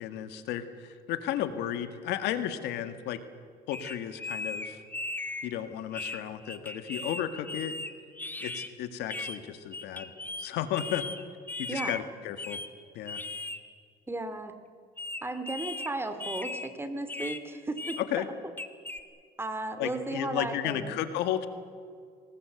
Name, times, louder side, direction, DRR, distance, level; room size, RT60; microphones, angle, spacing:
voice 1, 0.0-3.2 3.7-4.8 5.4-7.8 8.4-10.1 10.4-11.1 11.6-12.6 12.9-13.2 18.0-18.3 19.8-21.5, left 11 dB, 90° left, 9 dB, 1.9 m, -33 dB
sound 1, 3.7-5.5 5.9-8.7 9.1-9.4 9.7-10.5 10.7-12.0 12.4-12.7 13.1-13.6 15.0-15.9 16.2-16.7 17.1-17.4 17.8-18.0 18.6-19.0, left 2 dB, 10° left, 1.7 m, -37 dB
voice 2, 11.7-12.0 14.1-14.6 15.2-18.3 19.4-21.0, right 2 dB, 15° right, 10 dB, 2.4 m, -35 dB
26.5 x 20.0 x 8.0 m, 2.1 s
cardioid pair, 110°, 17 cm